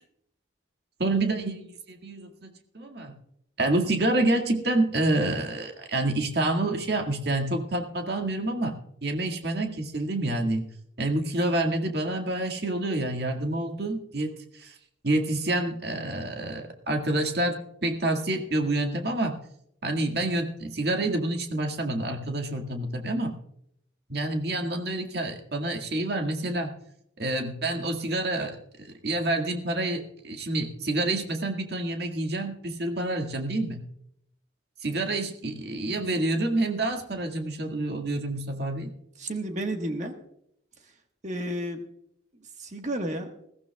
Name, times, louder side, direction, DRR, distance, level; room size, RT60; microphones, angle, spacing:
voice 1, 1.0-3.1 3.6-8.7 9.0-10.6 11.0-14.7 15.0-19.4 19.8-23.3 24.1-26.7 27.2-33.8 34.8-38.9, right 2 dB, 60° right, 4 dB, 1.9 m, -28 dB
voice 2, 39.2-40.1 41.2-41.8 42.6-43.3, right 1 dB, 40° right, 4 dB, 1.4 m, -31 dB
21.0 x 15.0 x 2.3 m, 0.72 s
head